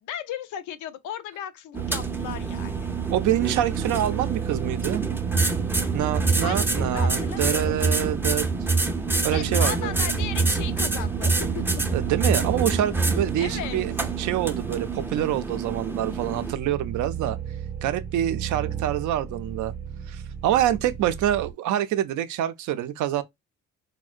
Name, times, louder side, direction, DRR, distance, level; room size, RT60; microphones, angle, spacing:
voice 1, 0.0-2.9 6.4-7.8 9.3-11.6 13.4-13.8, left 10 dB, 80° left, 0.5 m, -36 dB
sound 1, 1.7-16.5, right 3 dB, 5° right, 0.4 m, -27 dB
sound 2, 1.8-21.5, right 8 dB, 30° right, 0.8 m, -34 dB
voice 2, 3.1-5.0 5.9-8.5 9.2-10.0 11.9-17.4 17.8-19.7 20.1-23.2, right 11 dB, 75° right, 0.5 m, -26 dB
3.6 x 2.1 x 2.4 m
cardioid pair, 90°, 30 cm